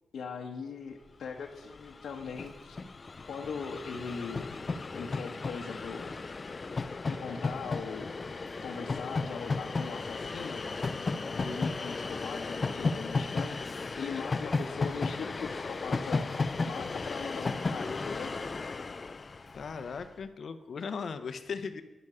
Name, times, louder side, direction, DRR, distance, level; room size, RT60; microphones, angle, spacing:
voice 1, 0.1-2.8 3.3-4.5 4.9-6.0 7.1-8.1 8.6-10.6 11.3-13.6 14.0-16.3 16.6-18.3, left 5 dB, 85° left, 1 dB, 1.0 m, -40 dB
Train, 1.4-1.5 1.6-20.1, left 3 dB, 30° left, 0.4 m, -34 dB
voice 2, 19.5-21.8, left 5 dB, 55° left, 10 dB, 0.8 m, -38 dB
11.0 x 10.5 x 4.9 m, 1.2 s
wide cardioid pair, 160°, 0 cm